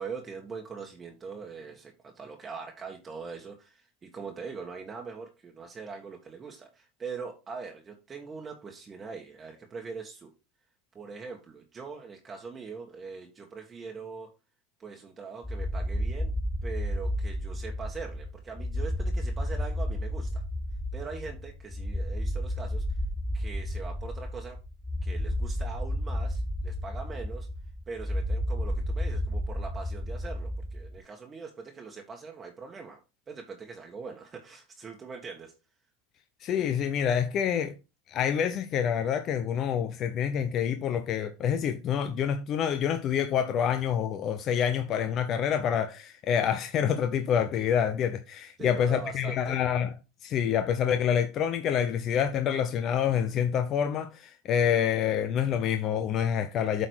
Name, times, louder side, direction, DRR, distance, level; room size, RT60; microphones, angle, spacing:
voice 1, 0.0-10.3 10.9-14.3 14.8-16.3 16.6-20.4 20.9-22.8 23.3-24.6 25.0-27.5 27.9-33.0 33.3-35.5 48.6-49.6, right 5 dB, 25° right, 1.5 m, -42 dB
sound 1, 15.4-31.0, equal, 5° left, 0.7 m, -32 dB
voice 2, 36.4-37.7 38.1-49.9 50.2-56.9, left 8 dB, 45° left, 0.8 m, -27 dB
8.0 x 4.0 x 4.6 m
supercardioid pair, 115°, 0 cm